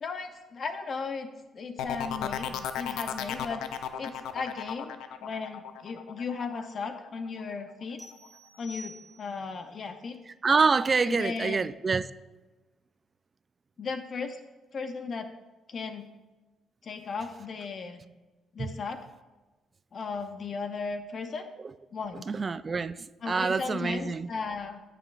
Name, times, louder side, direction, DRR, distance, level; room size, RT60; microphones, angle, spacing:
voice 1, 0.0-1.3 1.5-8.0 8.6-10.2 11.1-11.7 13.8-14.4 14.7-15.3 15.7-16.1 16.8-18.0 18.5-19.0 19.9-21.5 21.9-22.3 23.2-24.8, left 4 dB, 50° left, 0.6 m, -36 dB
sound 1, 1.8-7.4 7.8-8.3, left 9 dB, 90° left, 0.5 m, -35 dB
sound 2, 8.0-9.5, equal, 5° left, 1.5 m, -48 dB
voice 2, 10.4-12.1 18.6-18.7 22.3-24.3, right 4 dB, 35° right, 0.3 m, -26 dB
14.5 x 4.9 x 2.4 m
cardioid pair, 90°, 0 cm